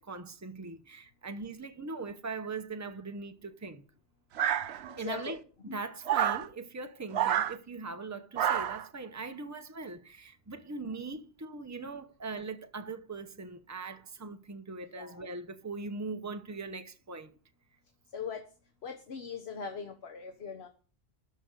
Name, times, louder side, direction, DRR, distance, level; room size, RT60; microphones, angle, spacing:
voice 1, 0.0-3.8 5.0-17.3, right 3 dB, 15° right, 0.9 m, -41 dB
sound 1, 4.4-5.1 6.1-6.5 7.1-7.6 8.4-8.9, right 10 dB, 80° right, 1.0 m, -28 dB
voice 2, 4.9-5.4 5.7-5.8 14.9-15.2 18.1-18.4 18.8-20.7, left 6 dB, 75° left, 1.3 m, -40 dB
13.0 x 5.3 x 8.1 m
omnidirectional pair, 1.1 m